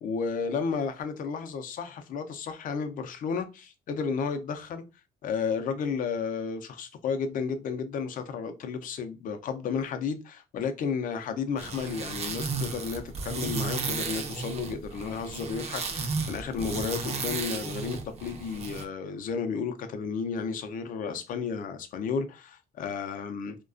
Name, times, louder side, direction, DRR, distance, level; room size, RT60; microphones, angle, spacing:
voice 1, 0.0-4.8 5.2-23.6, left 5 dB, 55° left, 0.5 m, -32 dB
sound 1, 11.6-18.8, right 4 dB, 40° right, 0.5 m, -34 dB
2.3 x 2.2 x 2.4 m
cardioid pair, 110°, 17 cm